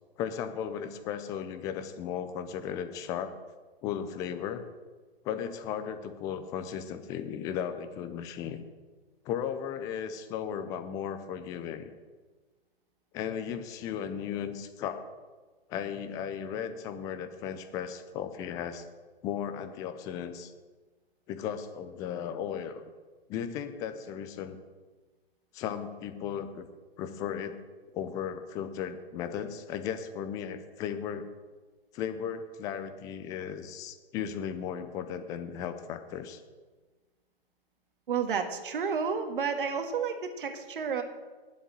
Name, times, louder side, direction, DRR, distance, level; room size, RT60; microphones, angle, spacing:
voice 1, 0.2-3.3 3.8-4.6 5.2-8.6 9.2-11.9 13.1-15.1 15.7-18.8 19.2-20.5 21.3-22.9 23.3-24.6 25.5-26.7 27.0-27.6 27.9-31.3 31.9-36.4, left 8 dB, 10° left, 10 dB, 0.4 m, -36 dB
voice 2, 38.1-41.0, right 6 dB, 60° right, 6 dB, 1.7 m, -31 dB
10.0 x 7.3 x 7.6 m, 1.3 s
figure-of-eight pair, 125°, 31 cm